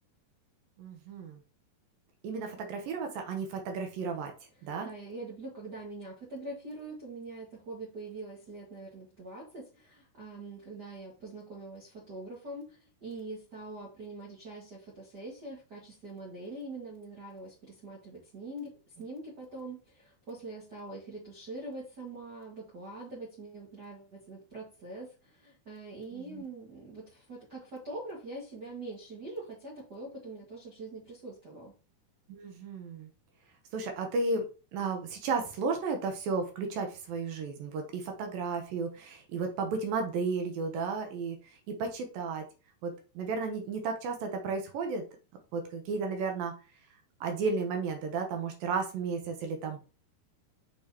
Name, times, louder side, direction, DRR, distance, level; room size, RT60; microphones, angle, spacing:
voice 1, 0.8-1.4 2.2-4.3 4.6-4.9 26.1-26.4 32.3-33.1 33.7-34.4 34.7-41.4 41.8-42.5 42.8-45.0 45.5-46.5 47.2-49.8, right 4 dB, 70° right, 4 dB, 2.5 m, -33 dB
voice 2, 4.5-31.7, right 2 dB, 55° right, -4 dB, 1.1 m, -44 dB
6.5 x 5.4 x 2.9 m, 0.33 s
omnidirectional pair, 4.8 m